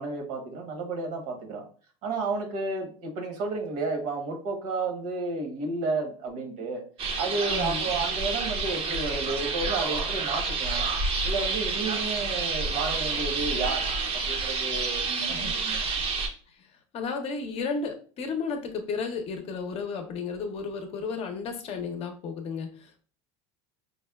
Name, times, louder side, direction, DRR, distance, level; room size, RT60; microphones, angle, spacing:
voice 1, 0.0-1.6 2.0-6.8 7.2-10.9 11.2-13.8 14.1-15.8, right 3 dB, 70° right, 4 dB, 1.0 m, -32 dB
sound 1, 7.0-16.3, right 4 dB, 40° right, 0.5 m, -29 dB
voice 2, 7.5-7.9 15.3-15.5 16.9-23.0, left 5 dB, 40° left, 5 dB, 0.6 m, -33 dB
5.0 x 2.1 x 2.3 m, 0.41 s
supercardioid pair, 135°, 16 cm